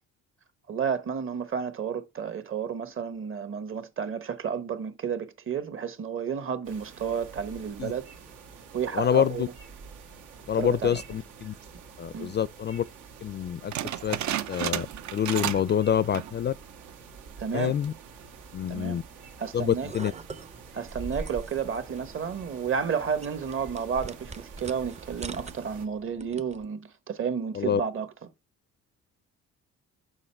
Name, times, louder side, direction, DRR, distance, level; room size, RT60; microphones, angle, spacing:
voice 1, 0.7-8.1 8.7-9.5 10.5-11.0 12.1-12.3 17.4-17.8 18.7-19.0 19.4-19.9 20.7-28.3, right 7 dB, 45° right, 1.1 m, -31 dB
sound 1, 6.6-25.9, right 5 dB, 85° right, 1.6 m, -48 dB
voice 2, 8.9-9.5 10.5-11.5 12.0-12.8 13.2-13.7 14.0-14.2 14.5-14.9 15.1-16.5 17.5-17.9 18.5-19.0 19.5-20.1 27.5-27.8, left 9 dB, 35° left, 0.4 m, -26 dB
sound 2, 13.7-15.8 16.0-16.4 16.9-17.0 17.7-18.0, right 11 dB, 70° right, 0.7 m, -32 dB
sound 3, 19.6-26.7, right 3 dB, 25° right, 0.5 m, -43 dB
6.4 x 5.1 x 4.4 m
cardioid pair, 90°, 30 cm